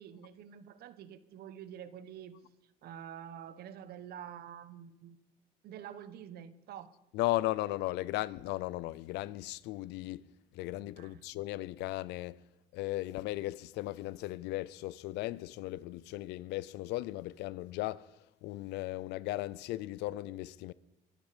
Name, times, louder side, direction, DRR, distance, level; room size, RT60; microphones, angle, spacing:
voice 1, 0.0-2.4 2.8-5.2 5.6-6.9 11.0-11.2, right 9 dB, 70° right, 1.1 m, -47 dB
voice 2, 7.1-10.3 10.5-12.4 12.7-18.1 18.4-20.7, left 17 dB, 90° left, 0.6 m, -36 dB
22.5 x 11.5 x 5.1 m
cardioid pair, 110°, 17 cm